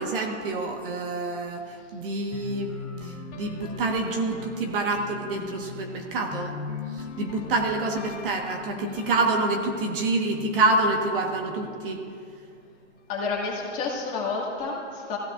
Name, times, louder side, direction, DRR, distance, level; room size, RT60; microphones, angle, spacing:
voice 1, 0.0-6.6 6.9-12.0, right 2 dB, 45° right, 2 dB, 1.4 m, -27 dB
sound 1, 2.3-12.1, left 6 dB, 75° left, 1.4 m, -41 dB
voice 2, 13.1-15.2, left 4 dB, 20° left, -3 dB, 1.9 m, -30 dB
15.5 x 15.5 x 2.5 m, 2.2 s
hypercardioid pair, 155°, 37 cm